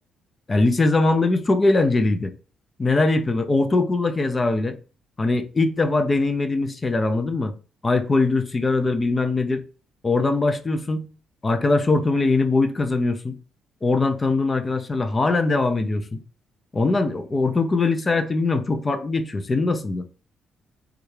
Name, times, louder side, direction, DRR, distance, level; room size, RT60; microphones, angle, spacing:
voice 1, 0.5-2.3 2.8-4.8 5.2-7.5 7.8-9.6 10.0-11.1 11.4-13.4 13.8-16.2 16.7-20.0, left 3 dB, 30° left, 0.4 m, -21 dB
3.5 x 2.2 x 3.2 m
cardioid pair, 90°, 0 cm